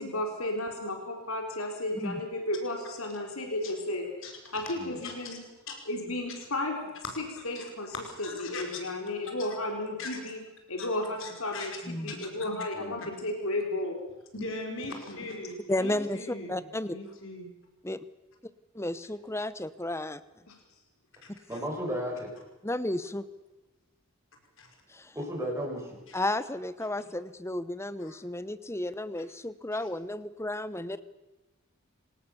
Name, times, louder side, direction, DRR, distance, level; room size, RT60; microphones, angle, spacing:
voice 1, 0.0-4.1 4.5-5.4 5.9-10.4 10.7-14.0 15.1-15.2 20.5-20.6, left 1 dB, 85° left, 3 dB, 3.9 m, -33 dB
voice 2, 4.2-4.6 5.0-5.1 5.7-5.8 7.4-7.6 8.0-8.6 9.2-9.5 10.0-10.1 10.8-10.9 11.2-11.7 12.1-12.2 14.3-16.6 16.9-17.5 21.2-21.6 24.6-24.7 26.1-26.2 28.0-28.2 29.8-29.9, left 2 dB, 65° left, 2 dB, 5.4 m, -41 dB
voice 3, 12.7-13.0 21.5-22.3 25.1-25.8, equal, 15° right, -1 dB, 6.5 m, -34 dB
voice 4, 15.7-17.0 17.8-18.0 18.7-20.2 22.6-23.3 24.9-25.1 26.1-31.0, left 1 dB, 10° left, 15 dB, 0.8 m, -33 dB
27.0 x 18.0 x 7.1 m, 1.1 s
head